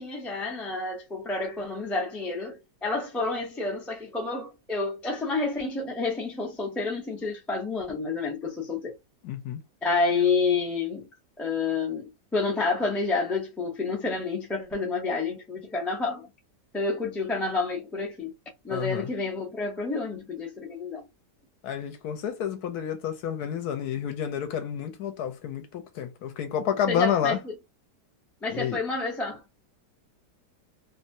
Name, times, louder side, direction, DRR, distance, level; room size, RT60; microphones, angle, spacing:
voice 1, 0.0-8.9 9.8-11.1 11.4-16.3 16.7-18.3 18.6-21.0 26.9-27.5 28.4-29.4, left 3 dB, ahead, 0.3 m, -29 dB
voice 2, 9.2-9.6 18.7-19.1 21.6-27.4 28.5-28.8, left 9 dB, 70° left, 1.1 m, -30 dB
3.0 x 2.2 x 2.6 m
omnidirectional pair, 1.9 m